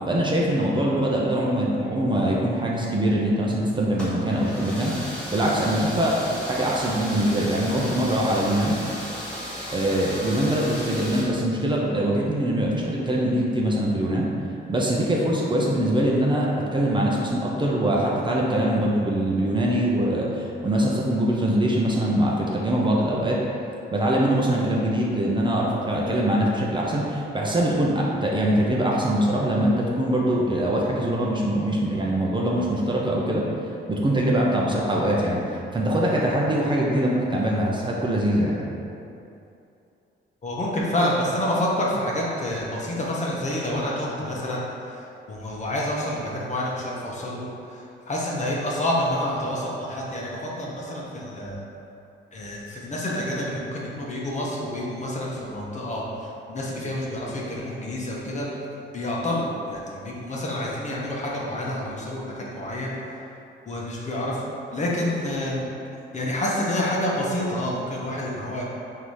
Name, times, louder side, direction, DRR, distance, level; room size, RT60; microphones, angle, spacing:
voice 1, 0.1-8.8 9.7-14.3 14.7-23.4 23.9-33.5 33.9-38.6, right 1 dB, 25° right, -3 dB, 0.6 m, -23 dB
sound 1, 3.9-11.2, equal, 5° left, 1.3 m, -35 dB
voice 2, 40.4-51.6 52.3-58.5 58.9-63.2 63.7-64.4 64.7-65.7 66.1-68.6, left 1 dB, 35° left, -4 dB, 0.9 m, -28 dB
3.8 x 2.8 x 4.7 m, 2.7 s
cardioid pair, 90°, 20 cm